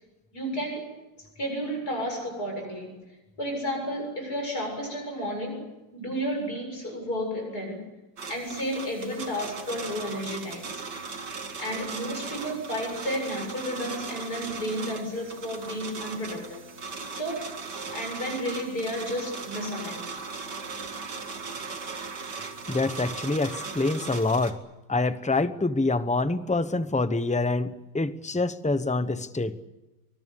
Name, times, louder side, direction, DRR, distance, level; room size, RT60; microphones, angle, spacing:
voice 1, 0.3-3.0 3.4-7.8 8.3-10.8 11.6-16.6 17.1-17.5 17.9-20.1, equal, 60° left, 2 dB, 8.2 m, -32 dB
sound 1, 8.2-24.5, right 4 dB, 65° right, 2.8 m, -38 dB
voice 2, 22.7-24.6 24.9-29.6, left 3 dB, 5° left, 12 dB, 0.5 m, -26 dB
24.0 x 22.0 x 8.3 m, 1.0 s
omnidirectional pair, 1.9 m